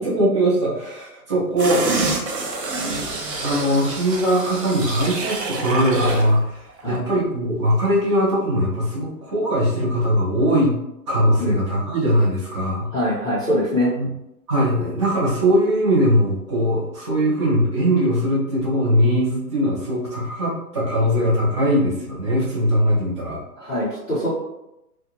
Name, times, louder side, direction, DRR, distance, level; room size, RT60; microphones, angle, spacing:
voice 1, 0.0-1.8 2.8-10.7 11.1-12.9 14.0-14.1 14.5-23.4, equal, 20° right, -6 dB, 0.4 m, -20 dB
sound 1, 1.6-6.3 6.7-6.8, right 3 dB, 90° right, 0.8 m, -26 dB
voice 2, 12.9-13.9 23.6-24.3, left 1 dB, 5° left, -16 dB, 0.7 m, -23 dB
2.4 x 2.2 x 2.9 m, 0.86 s
hypercardioid pair, 135°, 48 cm